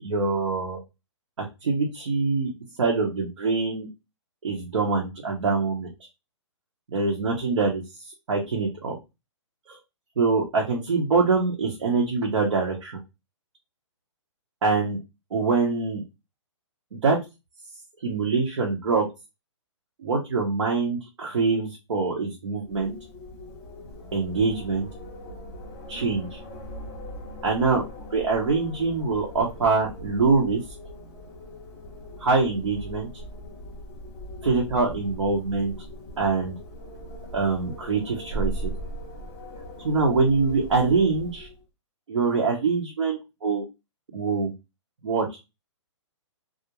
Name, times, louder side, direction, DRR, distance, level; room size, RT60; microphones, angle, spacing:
voice 1, 0.0-0.8 1.4-2.5 2.8-3.9 4.4-5.9 6.9-8.9 9.7-9.8 10.2-13.0 14.6-15.0 15.3-16.0 17.0-17.2 18.0-19.1 20.0-22.9 24.1-24.9 25.9-26.4 27.4-27.8 28.1-30.6 32.2-33.1 34.4-35.7 36.2-36.6 37.3-38.7 39.5-41.5 42.1-43.6 44.1-44.5 45.0-45.3, right 4 dB, 80° right, -2 dB, 0.8 m, -24 dB
Wind, 22.6-41.6, equal, 10° left, 0.4 m, -39 dB
2.4 x 2.1 x 2.9 m, 0.24 s
hypercardioid pair, 170°, 16 cm